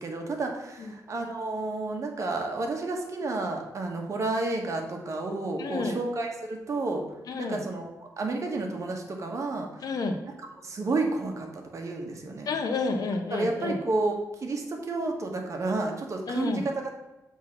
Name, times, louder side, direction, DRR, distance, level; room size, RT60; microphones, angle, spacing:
voice 1, 0.0-7.0 7.4-9.7 10.2-10.3 10.6-12.5 13.3-16.9, right 2 dB, 50° right, 2 dB, 1.4 m, -31 dB
voice 2, 5.6-6.0 7.3-7.6 9.8-10.2 12.5-13.8 16.3-16.6, left 3 dB, 70° left, 5 dB, 0.9 m, -30 dB
7.1 x 3.7 x 5.9 m, 1.0 s
cardioid pair, 105°, 7 cm